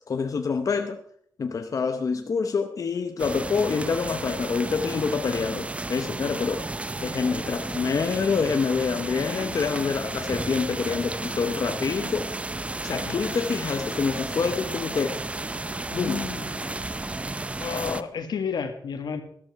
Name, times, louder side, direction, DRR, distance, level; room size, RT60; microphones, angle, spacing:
voice 1, 0.1-1.0 1.4-6.7 7.0-12.3 12.8-15.2 15.9-16.2, left 5 dB, 55° left, 6 dB, 0.9 m, -26 dB
sound 1, 3.2-18.0, right 2 dB, 20° right, 0.6 m, -33 dB
voice 2, 15.9-16.8 17.6-19.2, left 6 dB, 85° left, 8 dB, 1.6 m, -32 dB
13.0 x 13.0 x 4.7 m, 0.63 s
wide cardioid pair, 130°, 7 cm